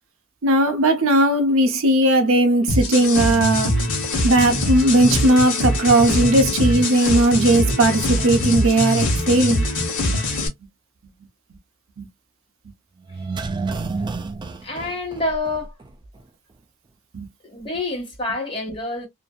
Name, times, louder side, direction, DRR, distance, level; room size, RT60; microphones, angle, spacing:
voice 1, 0.4-3.8 4.2-9.6 12.0-12.1 17.1-17.3, right 1 dB, 65° right, 0.6 m, -17 dB
sound 1, 2.7-10.5, left 1 dB, 55° left, 1.0 m, -22 dB
sound 2, 13.1-15.9 16.2-16.3, right 4 dB, 20° right, 0.3 m, -29 dB
voice 2, 14.6-15.7 17.4-19.1, left 2 dB, 25° left, 1.4 m, -27 dB
2.6 x 2.5 x 2.2 m
head